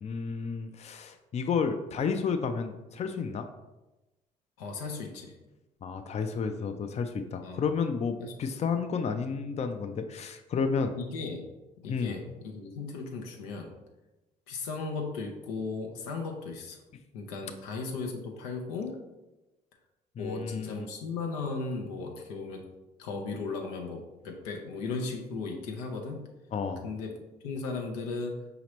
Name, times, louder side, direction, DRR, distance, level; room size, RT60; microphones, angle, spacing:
voice 1, 0.0-3.5 5.8-10.9 11.9-12.2 20.2-20.9 26.5-26.9, left 5 dB, 35° left, 7 dB, 0.4 m, -31 dB
voice 2, 4.6-5.4 7.4-7.6 8.2-8.3 11.0-11.4 11.8-13.7 14.5-16.8 17.1-19.0 20.2-22.7 23.0-26.3 26.8-27.2 27.4-28.4, left 4 dB, 90° left, 2 dB, 0.6 m, -36 dB
5.0 x 2.9 x 3.0 m, 1.1 s
supercardioid pair, 60°, 19 cm